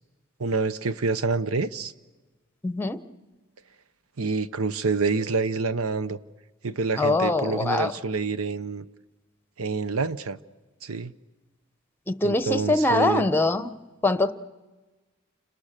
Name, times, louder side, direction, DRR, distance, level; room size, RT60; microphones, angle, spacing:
voice 1, 0.4-1.9 4.2-6.2 6.6-8.8 9.6-10.4 10.8-11.1 12.2-13.3, right 4 dB, 85° right, 0.9 m, -27 dB
voice 2, 2.6-3.0 7.0-7.9 12.1-13.7 14.0-14.3, left 2 dB, 10° left, 0.9 m, -23 dB
29.5 x 27.0 x 6.7 m
head